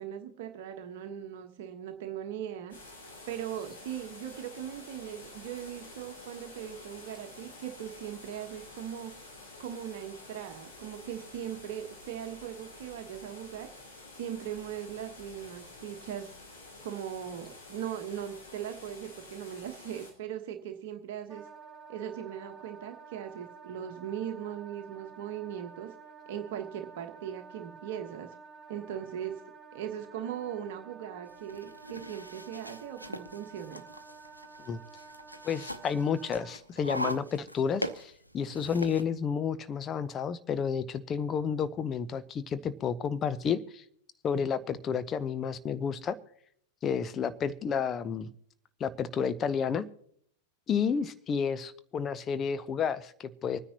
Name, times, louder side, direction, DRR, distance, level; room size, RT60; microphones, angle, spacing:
voice 1, 0.0-2.7 3.3-9.1 9.6-13.7 14.2-16.3 16.8-21.4 21.9-25.9 26.3-28.3 28.7-29.4 29.7-33.8, right 10 dB, 50° right, 5 dB, 1.2 m, -39 dB
sound 1, 2.7-20.1, left 2 dB, 65° left, 6.5 m, -49 dB
Wind instrument woodwind instrument, 21.3-36.6, right 5 dB, 15° right, 1.5 m, -51 dB
sound 2, 31.3-39.0, equal, 90° right, 0.7 m, -41 dB
voice 2, 35.4-43.8 44.2-46.2 46.8-48.3 48.8-49.8 50.7-53.6, left 6 dB, 25° left, 12 dB, 0.8 m, -31 dB
25.5 x 9.8 x 2.9 m, 0.67 s
figure-of-eight pair, 90°, 0 cm